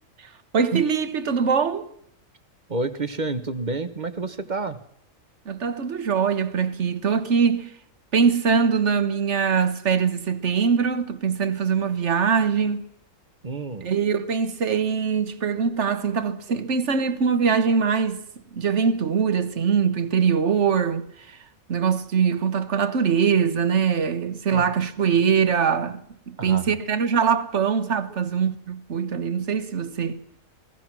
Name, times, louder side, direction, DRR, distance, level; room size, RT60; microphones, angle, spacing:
voice 1, 0.5-1.9 5.4-7.7 8.1-12.9 13.8-18.2 18.5-21.4 21.7-26.0 26.3-30.2, right 6 dB, 60° right, 1.5 m, -22 dB
voice 2, 2.7-4.8 13.4-13.9 24.5-24.7 26.4-26.8, right 3 dB, 35° right, 1.2 m, -29 dB
27.5 x 18.0 x 6.1 m
omnidirectional pair, 1.4 m